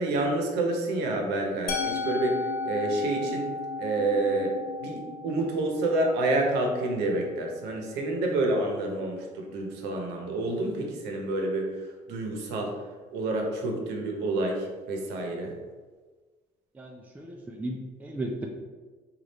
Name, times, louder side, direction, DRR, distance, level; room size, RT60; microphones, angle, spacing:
voice 1, 0.0-3.5 3.8-12.7 13.1-15.5, right 2 dB, 90° right, 1 dB, 0.8 m, -28 dB
Musical instrument, 1.7-7.6, left 4 dB, 60° left, 0.6 m, -35 dB
voice 2, 16.7-18.5, right 1 dB, 10° right, 0 dB, 0.4 m, -35 dB
3.3 x 2.4 x 4.0 m, 1.4 s
cardioid pair, 110°, 17 cm